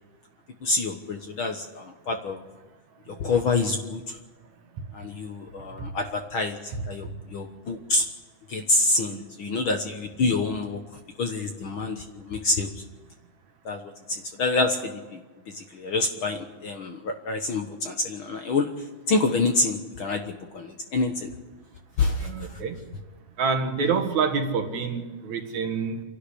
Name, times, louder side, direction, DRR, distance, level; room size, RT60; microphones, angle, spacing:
voice 1, 0.6-2.4 3.1-4.2 4.9-8.0 8.5-10.8 11.2-12.7 13.6-15.2 15.5-18.7 19.1-21.3 22.0-22.6, left 3 dB, 55° left, 5 dB, 1.6 m, -27 dB
voice 2, 22.2-22.8 23.4-26.0, right 5 dB, 70° right, 5 dB, 3.0 m, -27 dB
27.5 x 11.5 x 10.0 m, 1.3 s
omnidirectional pair, 3.5 m